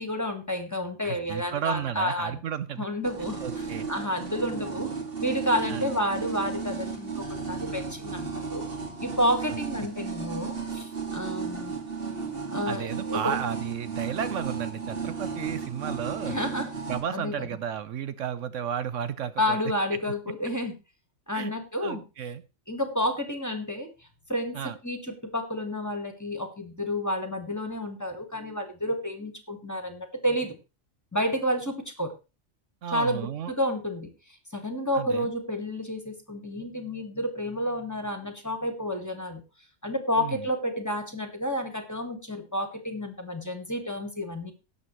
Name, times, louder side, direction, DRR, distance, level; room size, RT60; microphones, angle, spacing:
voice 1, 0.0-2.4 2.8-4.9 5.2-8.6 9.0-11.7 12.5-13.3 16.3-16.7 17.1-17.5 19.4-20.7 21.3-22.0 22.7-23.9 24.3-24.6 24.8-30.5 31.1-32.1 32.9-34.1 34.5-39.4 39.8-44.5, equal, 15° left, 5 dB, 1.7 m, -30 dB
voice 2, 1.0-2.9 3.4-3.9 5.7-5.8 12.7-16.4 16.9-19.6 21.3-21.5 21.8-22.4 24.5-24.8 32.8-33.5 34.9-35.3 40.2-40.4, right 8 dB, 70° right, 13 dB, 1.0 m, -33 dB
sound 1, 3.0-17.0, right 5 dB, 45° right, 2.2 m, -34 dB
18.0 x 7.4 x 3.2 m, 0.30 s
omnidirectional pair, 1.4 m